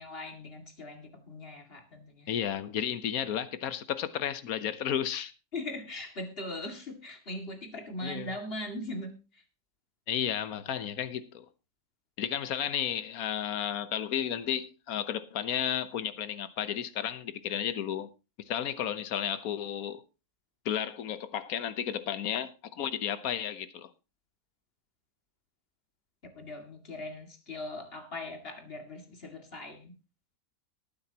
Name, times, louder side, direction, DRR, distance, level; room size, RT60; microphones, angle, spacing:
voice 1, 0.0-2.3 5.5-9.4 26.3-29.9, left 1 dB, 40° left, 2.4 m, -40 dB
voice 2, 2.3-5.3 8.0-8.3 10.1-11.5 12.2-18.1 18.5-20.0 20.6-23.9, left 9 dB, 70° left, 1.4 m, -33 dB
19.5 x 9.5 x 2.9 m
omnidirectional pair, 1.6 m